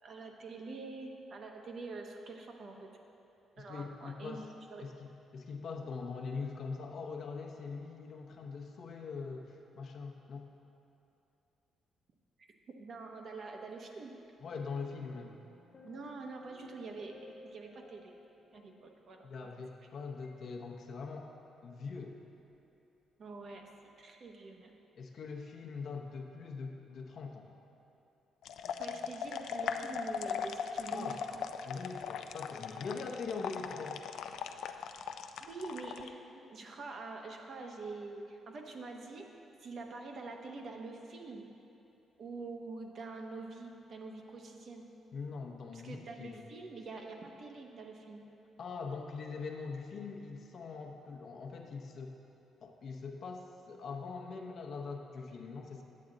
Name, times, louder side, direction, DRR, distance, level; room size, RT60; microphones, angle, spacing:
voice 1, 0.0-2.9 3.6-4.4 4.7-4.9 12.4-12.5 12.8-14.2 15.8-18.1 18.5-19.5 23.2-24.8 28.8-31.4 35.4-41.5 42.2-44.9 45.7-48.2, right 3 dB, 55° right, 2 dB, 0.9 m, -46 dB
voice 2, 3.6-4.4 4.8-10.5 14.4-15.4 19.2-21.3 21.6-22.2 25.0-27.5 30.9-31.2 31.6-34.0 45.1-46.4 48.6-52.1 52.6-55.8, left 4 dB, 60° left, 2 dB, 0.8 m, -42 dB
Mix of different piano sounds, 14.5-19.9 20.2-20.4, left 3 dB, 40° left, 1.2 m, -59 dB
sound 1, 28.4-36.1, left 7 dB, 75° left, 0.3 m, -39 dB
8.6 x 7.5 x 3.9 m, 2.8 s
cardioid pair, 90°, 0 cm